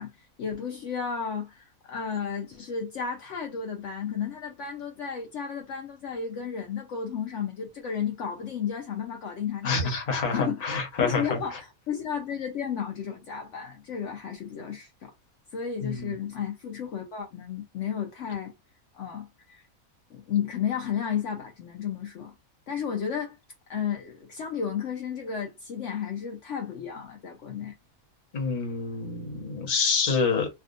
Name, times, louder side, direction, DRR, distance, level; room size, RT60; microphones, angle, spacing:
voice 1, 0.0-9.9 10.2-10.7 11.0-15.1 15.5-18.5 18.9-19.6 20.1-22.3 22.7-23.4 23.7-27.7, left 7 dB, 65° left, 0.9 m, -33 dB
voice 2, 9.6-11.4 15.8-16.1 28.3-30.5, left 4 dB, 35° left, 0.9 m, -27 dB
3.3 x 2.4 x 2.5 m
omnidirectional pair, 1.5 m